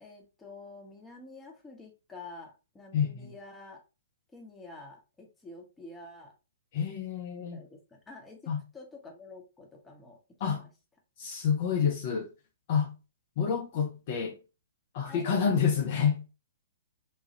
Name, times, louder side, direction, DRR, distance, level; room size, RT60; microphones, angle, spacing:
voice 1, 0.0-3.8 4.3-6.3 7.4-10.7 15.1-15.2, left 2 dB, 10° left, 0.8 m, -49 dB
voice 2, 2.9-3.3 6.7-7.6 8.5-8.6 10.4-10.6 11.2-12.3 12.7-12.9 13.4-14.4 14.9-16.2, left 7 dB, 45° left, 0.5 m, -28 dB
3.0 x 2.3 x 2.8 m
figure-of-eight pair, 115°, 0 cm